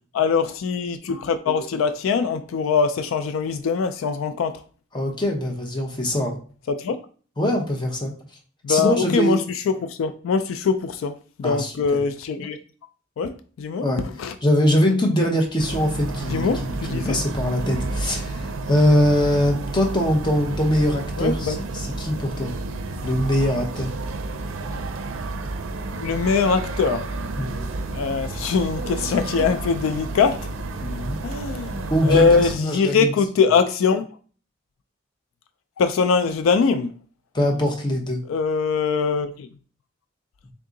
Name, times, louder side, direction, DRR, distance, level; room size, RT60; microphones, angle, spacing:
voice 1, 0.1-4.6 6.8-7.0 8.6-9.4 9.7-11.1 11.4-12.6 13.2-13.8 14.2-14.3 16.3-17.2 21.2-21.6 26.0-27.1 27.9-30.5 31.2-34.1 35.8-36.9 38.3-39.5, left 5 dB, 80° left, 0.3 m, -22 dB
voice 2, 4.9-6.4 7.4-8.1 8.7-9.4 11.4-11.7 13.8-14.0 14.4-22.5 23.0-23.9 27.4-27.7 30.8-31.2 31.9-33.1 37.3-38.2, equal, 25° left, 0.8 m, -22 dB
sound 1, 15.6-32.5, right 2 dB, 75° right, 0.5 m, -31 dB
3.5 x 2.7 x 3.8 m
head